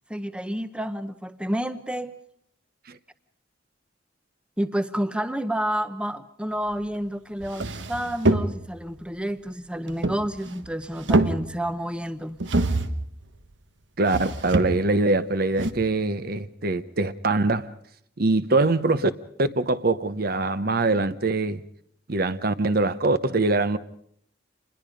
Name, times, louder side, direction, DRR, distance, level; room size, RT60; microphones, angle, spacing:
voice 1, 0.1-2.2 4.6-12.4, equal, 5° right, 0.8 m, -29 dB
sound 1, 6.9-7.0 7.4-8.8 9.9-10.7 10.9-11.8 12.4-13.1 14.0-15.0 15.6-15.7, right 2 dB, 80° right, 1.3 m, -25 dB
voice 2, 14.0-17.7 18.2-19.1 19.4-21.6 22.1-23.8, right 2 dB, 55° right, 0.9 m, -23 dB
27.5 x 21.0 x 5.2 m
head